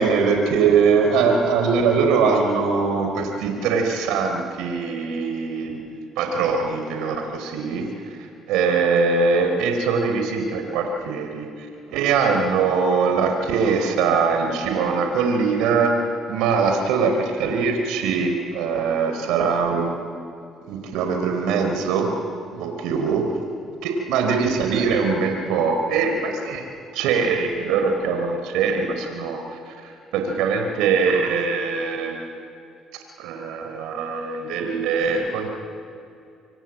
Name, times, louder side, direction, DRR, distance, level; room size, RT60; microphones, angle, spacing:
voice 1, 0.0-7.9 8.5-11.5 11.9-16.0 16.3-19.9 20.7-22.1 22.5-23.3 23.8-26.6 26.9-32.3 33.2-35.5, right 5 dB, 80° right, 4 dB, 3.8 m, -22 dB
26.0 x 24.5 x 9.0 m, 2.6 s
supercardioid pair, 80°, 0 cm